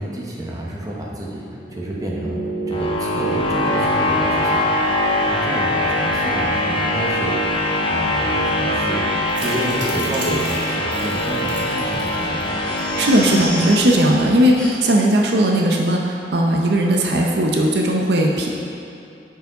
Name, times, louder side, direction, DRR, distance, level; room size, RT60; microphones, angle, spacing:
voice 1, 0.0-7.6 7.9-9.1 9.4-12.7, right 1 dB, 20° right, -3 dB, 0.8 m, -30 dB
sound 1, 1.6-14.6, left 1 dB, 30° left, 0.6 m, -22 dB
sound 2, 9.3-12.4 12.8-12.9 13.2-13.3, right 1 dB, 80° right, 1.3 m, -30 dB
Crying sobbing, 12.4-13.9 14.6-15.0 15.4-15.5 15.8-16.0 16.5-16.6 16.9-17.0, equal, 5° left, 1.3 m, -33 dB
voice 2, 13.0-18.5, right 1 dB, 65° right, 0 dB, 0.6 m, -17 dB
6.6 x 4.7 x 4.6 m, 2.6 s
head